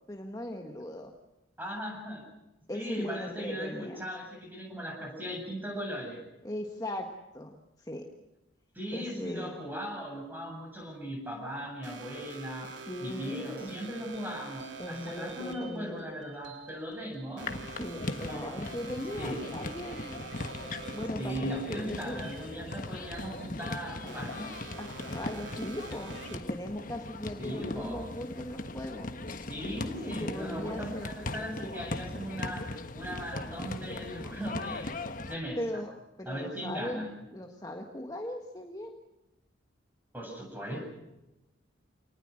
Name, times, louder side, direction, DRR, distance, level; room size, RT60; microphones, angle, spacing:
voice 1, 0.1-1.1 2.7-4.0 6.4-8.1 8.9-9.5 12.7-13.8 14.8-16.0 17.5-20.2 20.9-22.3 24.8-29.1 30.1-31.1 35.5-35.9 36.2-37.0 37.3-38.9, left 1 dB, 20° left, 3 dB, 1.6 m, -39 dB
voice 2, 1.6-2.2 2.7-6.2 8.7-12.7 13.0-17.5 18.1-18.6 19.2-19.4 21.2-24.6 27.4-28.1 29.5-35.0 35.3-35.8 36.2-37.2 40.1-41.0, equal, 10° right, 1 dB, 8.0 m, -38 dB
sound 1, 11.8-26.4, right 4 dB, 70° right, 3.7 m, -47 dB
sound 2, 17.4-35.4, left 2 dB, 45° left, 1.4 m, -39 dB
28.0 x 19.5 x 6.5 m, 0.97 s
head